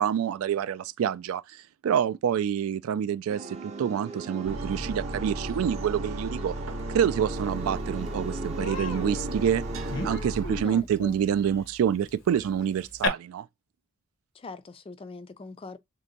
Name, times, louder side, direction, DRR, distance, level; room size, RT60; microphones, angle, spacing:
voice 1, 0.0-6.6 6.9-9.6 10.0-13.5, right 8 dB, 90° right, 0.3 m, -27 dB
sound 1, 3.3-10.2, right 3 dB, 30° right, 0.5 m, -38 dB
sound 2, 4.5-10.6, right 1 dB, 75° right, 0.7 m, -35 dB
Human voice, 7.6-7.7 8.0-8.2 8.6-13.1, left 3 dB, 65° left, 0.7 m, -36 dB
voice 2, 10.6-11.2 14.3-15.8, left 3 dB, 25° left, 0.3 m, -42 dB
3.4 x 2.7 x 3.9 m
head